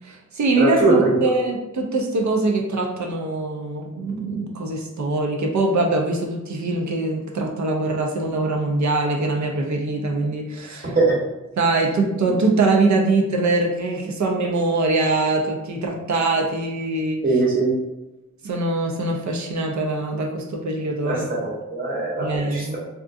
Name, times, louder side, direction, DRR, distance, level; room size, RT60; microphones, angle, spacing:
voice 1, 0.0-10.9 11.6-17.2 18.4-21.3 22.2-22.8, right 2 dB, 65° right, 1 dB, 0.5 m, -23 dB
voice 2, 0.5-1.3 10.9-11.1 12.2-12.3 17.2-17.7 21.0-22.8, right 3 dB, 25° right, -5 dB, 0.9 m, -21 dB
3.6 x 2.4 x 2.5 m, 1.0 s
wide cardioid pair, 115°, 31 cm